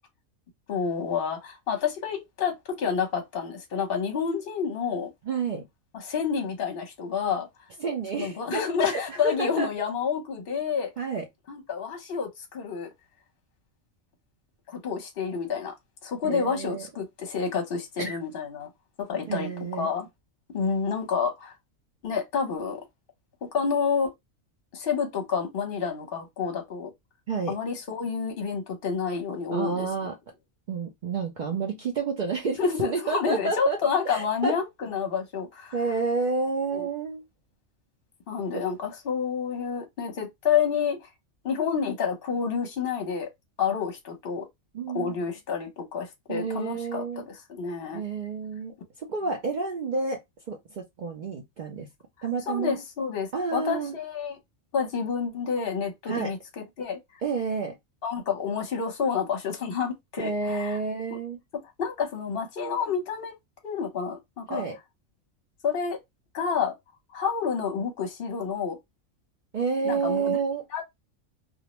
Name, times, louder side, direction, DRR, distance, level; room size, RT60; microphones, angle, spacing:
voice 1, 0.7-5.1 5.9-7.5 8.1-10.9 11.5-12.9 14.7-15.7 16.0-18.7 19.0-19.5 19.8-20.1 20.5-21.5 22.0-22.8 23.4-24.1 24.7-26.9 27.5-29.9 32.6-35.7 36.7-36.9 38.3-41.1 41.4-43.3 43.6-44.5 44.9-48.0 52.5-54.4 54.7-57.0 58.0-60.8 61.5-63.3 63.6-64.6 65.6-66.0 66.3-66.7 67.1-68.8 69.8-70.4 70.7-71.0, left 6 dB, 50° left, 0.9 m, -29 dB
voice 2, 5.2-5.7 7.8-9.7 11.0-11.3 16.2-16.9 18.0-18.2 19.3-19.9 27.3-27.6 29.5-30.2 30.7-33.8 34.0-34.6 35.7-37.2 38.5-38.6 44.7-45.2 46.3-47.3 47.9-51.9 52.2-52.8 53.3-54.0 56.1-56.3 57.2-57.8 60.2-61.4 64.5-64.8 69.5-70.7, right 4 dB, 75° right, 0.4 m, -30 dB
2.4 x 2.0 x 2.8 m
omnidirectional pair, 1.4 m